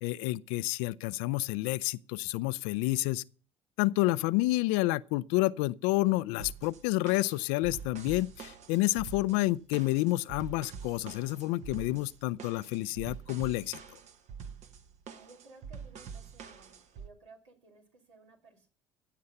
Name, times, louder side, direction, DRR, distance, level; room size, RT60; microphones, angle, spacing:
voice 1, 0.0-3.2 3.8-13.8, left 19 dB, 65° left, 0.5 m, -29 dB
sound 1, 6.4-17.1, right 6 dB, 50° right, 1.2 m, -46 dB
voice 2, 15.1-18.7, right 3 dB, 80° right, 3.1 m, -57 dB
16.0 x 7.5 x 5.6 m
hypercardioid pair, 60°, 15 cm